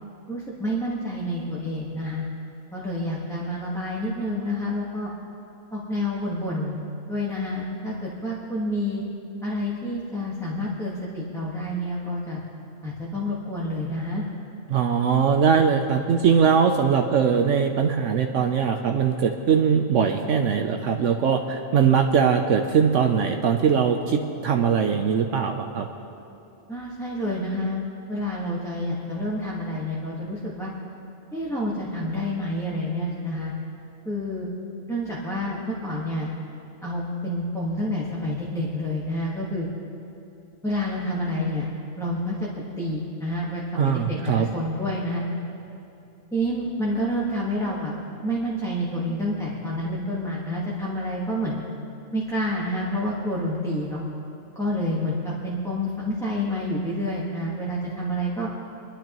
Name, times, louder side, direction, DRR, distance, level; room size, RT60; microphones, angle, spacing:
voice 1, 0.3-2.2 2.7-5.1 5.7-6.8 7.1-9.0 9.4-12.4 12.8-14.2 26.7-27.8 28.1-30.7 31.3-33.5 34.0-34.5 34.9-36.3 36.8-39.7 40.6-41.7 42.0-42.5 42.8-45.2 46.3-47.9 48.2-51.6 52.1-54.0 54.5-58.5, left 1 dB, ahead, -7 dB, 1.3 m, -28 dB
voice 2, 14.7-25.9 43.8-44.5, right 6 dB, 70° right, 4 dB, 1.0 m, -21 dB
23.0 x 11.5 x 3.0 m, 2.8 s
omnidirectional pair, 1.4 m